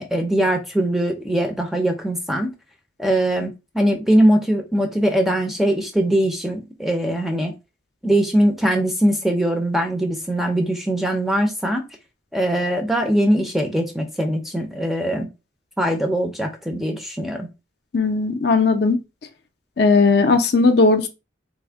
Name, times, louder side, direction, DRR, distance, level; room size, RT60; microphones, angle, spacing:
voice 1, 0.0-2.5 3.0-7.5 8.0-11.9 12.3-15.3 15.8-17.5, right 1 dB, ahead, 0.4 m, -21 dB
voice 2, 17.9-19.0 19.8-21.1, left 3 dB, 55° left, 0.5 m, -17 dB
3.3 x 2.1 x 3.4 m
head